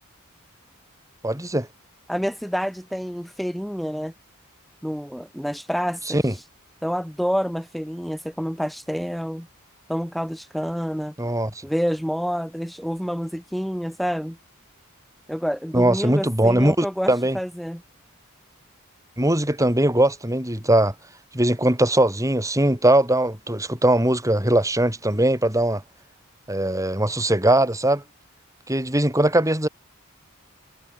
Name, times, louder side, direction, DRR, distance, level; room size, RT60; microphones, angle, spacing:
voice 1, 1.2-1.7 6.1-6.3 11.2-11.5 15.7-17.4 19.2-20.9 21.3-25.8 26.5-28.0 28.7-29.7, right 1 dB, 15° right, 7.2 m, -20 dB
voice 2, 2.1-4.1 4.8-6.4 6.8-9.5 9.9-11.1 11.6-14.4 15.3-17.8, equal, ahead, 5.5 m, -28 dB
head